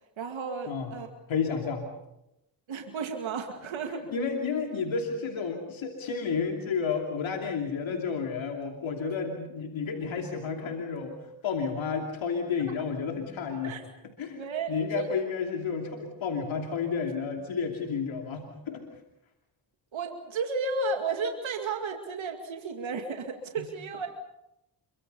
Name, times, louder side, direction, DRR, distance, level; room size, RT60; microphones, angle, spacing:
voice 1, 0.2-1.1 2.7-4.0 13.6-13.8 14.3-15.1 17.0-17.1 19.9-24.1, right 4 dB, 80° right, 4 dB, 2.4 m, -33 dB
voice 2, 1.3-1.8 3.9-11.2 11.4-13.8 14.2-14.4 14.7-18.8, left 5 dB, 80° left, 2 dB, 2.9 m, -31 dB
27.0 x 24.0 x 5.5 m, 0.88 s
supercardioid pair, 45°, 46 cm